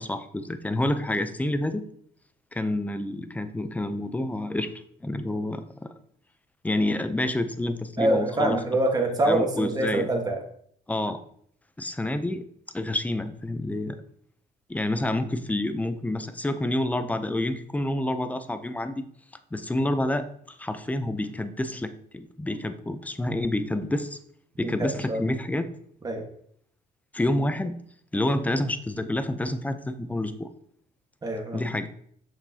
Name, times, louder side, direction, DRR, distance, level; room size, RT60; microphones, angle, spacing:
voice 1, 0.0-1.9 2.5-4.7 5.0-5.9 6.6-8.6 9.3-10.1 10.9-11.2 11.8-12.4 12.7-14.0 14.7-19.0 19.5-24.2 24.6-25.7 27.1-27.8 28.1-30.5 31.5-31.9, left 1 dB, 10° left, 10 dB, 0.5 m, -28 dB
voice 2, 8.0-10.4 24.6-25.2 26.0-26.2 31.2-31.6, right 1 dB, 25° right, 2 dB, 1.4 m, -25 dB
6.7 x 6.2 x 2.8 m, 0.65 s
cardioid pair, 110°, 17 cm